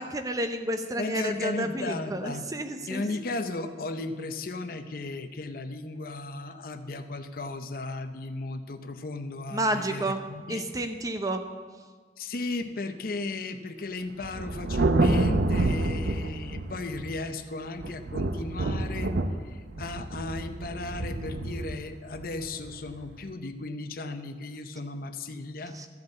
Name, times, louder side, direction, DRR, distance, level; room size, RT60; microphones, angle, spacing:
voice 1, 0.0-3.0 9.5-10.2 10.5-11.4 25.7-25.9, right 1 dB, 20° right, 7 dB, 0.7 m, -30 dB
voice 2, 0.9-2.4 2.9-10.6 12.2-19.1 19.4-25.8, left 2 dB, 55° left, 9 dB, 0.6 m, -35 dB
Thunder, 14.2-17.3 17.8-23.1, right 2 dB, 75° right, 0.7 m, -28 dB
13.5 x 5.4 x 8.1 m, 1.5 s
head